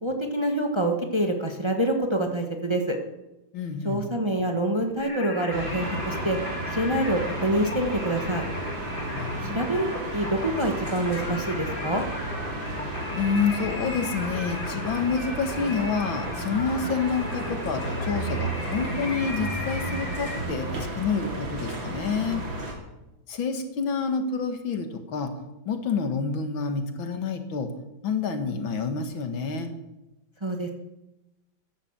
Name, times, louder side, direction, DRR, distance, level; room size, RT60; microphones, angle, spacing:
voice 1, 0.0-3.0 3.8-6.4 6.7-8.4 9.5-12.0 30.4-30.7, right 1 dB, 15° right, 3 dB, 1.3 m, -26 dB
voice 2, 3.5-4.0 9.1-9.6 13.1-22.4 23.3-25.3 25.7-27.7 28.0-29.7, left 5 dB, 90° left, 7 dB, 2.4 m, -28 dB
Singing, 5.0-20.4, left 2 dB, 25° left, 2.3 m, -37 dB
sound 1, 5.5-22.7, right 1 dB, 90° right, 3.5 m, -33 dB
14.0 x 10.5 x 7.4 m, 0.97 s
omnidirectional pair, 2.1 m